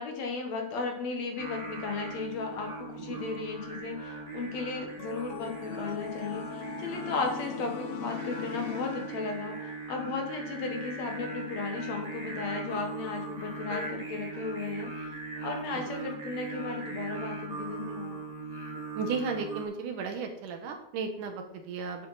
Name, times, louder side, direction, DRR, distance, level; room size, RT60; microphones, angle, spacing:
voice 1, 0.0-14.9 15.4-18.2, left 4 dB, 60° left, 3 dB, 2.3 m, -35 dB
Singing, 1.4-19.6, right 3 dB, 40° right, 0.5 m, -40 dB
sound 1, 5.0-9.7, left 8 dB, 85° left, 1.3 m, -40 dB
voice 2, 19.0-22.1, right 5 dB, 75° right, 4 dB, 2.8 m, -35 dB
10.0 x 7.6 x 4.1 m, 0.75 s
omnidirectional pair, 3.8 m